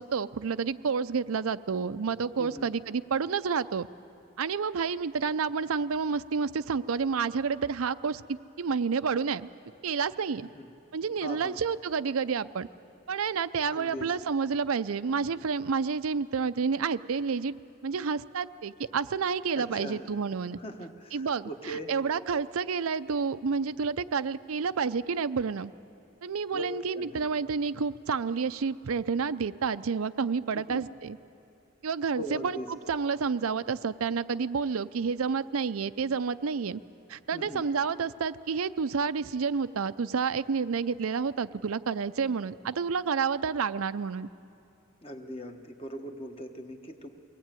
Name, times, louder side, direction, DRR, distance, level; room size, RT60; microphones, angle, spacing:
voice 1, 0.0-3.9 4.4-9.5 9.8-10.5 10.9-12.7 13.1-17.5 17.8-20.6 21.1-25.7 26.2-31.2 31.8-36.8 37.1-44.3, right 5 dB, 90° right, 13 dB, 0.5 m, -29 dB
voice 2, 11.0-11.6 13.7-14.2 19.6-20.0 20.6-21.9 26.5-26.7 26.9-27.2 30.5-30.8 32.2-32.7 37.3-37.6 45.0-47.1, equal, 25° left, 5 dB, 1.2 m, -40 dB
23.0 x 18.0 x 9.0 m, 2.7 s
head